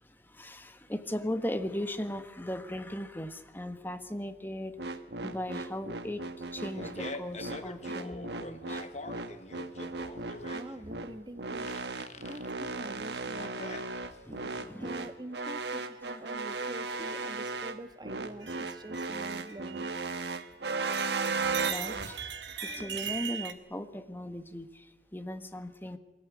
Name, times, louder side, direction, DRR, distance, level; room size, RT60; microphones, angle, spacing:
voice 1, 0.3-4.8 5.2-6.2 6.5-8.8 14.2-15.1 21.7-22.2 22.6-24.9 25.1-26.0, left 1 dB, 10° left, 8 dB, 1.4 m, -37 dB
sound 1, 4.8-22.1, right 3 dB, 70° right, 1.4 m, -36 dB
Fart, 6.4-14.4, left 2 dB, 40° left, 1.4 m, -45 dB
voice 2, 10.5-11.7 12.1-13.8 14.7-19.9, right 1 dB, 25° right, 9 dB, 1.4 m, -45 dB
sound 2, 18.4-20.5 20.8-23.5, right 8 dB, 85° right, 1.9 m, -40 dB
23.0 x 16.0 x 9.4 m, 1.1 s
head